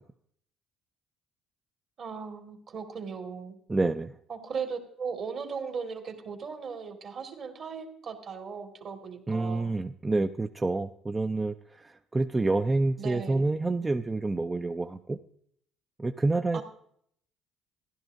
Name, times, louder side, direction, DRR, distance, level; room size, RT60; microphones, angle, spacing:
voice 1, 2.0-3.6 4.3-9.7 13.0-13.4 16.5-16.6, right 5 dB, 55° right, 3 dB, 1.9 m, -37 dB
voice 2, 3.7-4.1 9.3-15.2 16.0-16.6, right 2 dB, 20° right, 7 dB, 0.4 m, -28 dB
14.0 x 11.0 x 2.6 m, 0.67 s
supercardioid pair, 80°, 0 cm